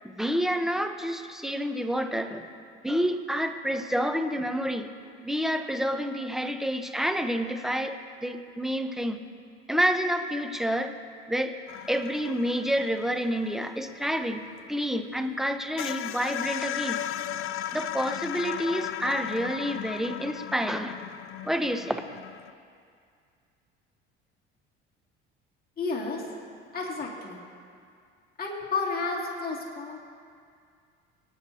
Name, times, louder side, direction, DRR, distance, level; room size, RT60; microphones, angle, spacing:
voice 1, 0.0-2.5 2.8-4.9 5.2-9.2 9.7-11.0 11.3-11.6 11.9-17.0 17.7-21.0 21.4-22.1, equal, ahead, 7 dB, 0.9 m, -29 dB
sound 1, 11.7-15.1 15.4-15.5 15.8-22.5, left 11 dB, 45° left, 0.5 m, -36 dB
voice 2, 25.8-26.3 26.7-27.4 28.4-30.0, left 4 dB, 30° left, -3 dB, 2.5 m, -31 dB
23.0 x 10.0 x 2.8 m, 2.2 s
hypercardioid pair, 70°, 30 cm